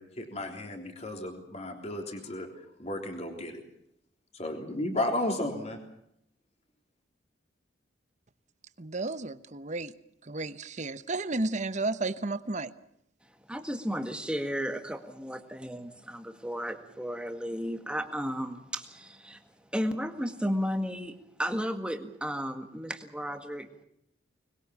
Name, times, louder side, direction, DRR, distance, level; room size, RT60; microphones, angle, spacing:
voice 1, 0.0-3.6 4.3-5.8, left 1 dB, 35° left, 3 dB, 3.5 m, -34 dB
voice 2, 8.8-9.9 10.2-12.7, right 2 dB, 40° right, 13 dB, 1.0 m, -32 dB
voice 3, 13.5-19.4 19.7-23.8, equal, 5° right, 6 dB, 1.8 m, -34 dB
25.0 x 21.0 x 7.3 m, 0.74 s
head